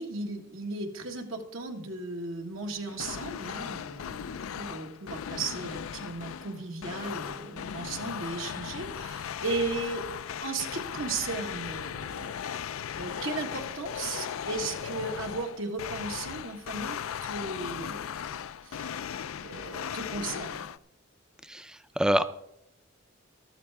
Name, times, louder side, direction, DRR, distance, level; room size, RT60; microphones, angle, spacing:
voice 1, 0.0-10.0 10.4-12.6 13.0-18.1 18.6-19.0 19.4-20.7, right 3 dB, 75° right, 3 dB, 1.6 m, -36 dB
sound 1, 2.9-20.8, left 8 dB, 85° left, 0.4 m, -37 dB
voice 2, 21.5-22.2, right 1 dB, 5° right, 12 dB, 0.5 m, -26 dB
14.0 x 13.0 x 3.5 m, 0.79 s
head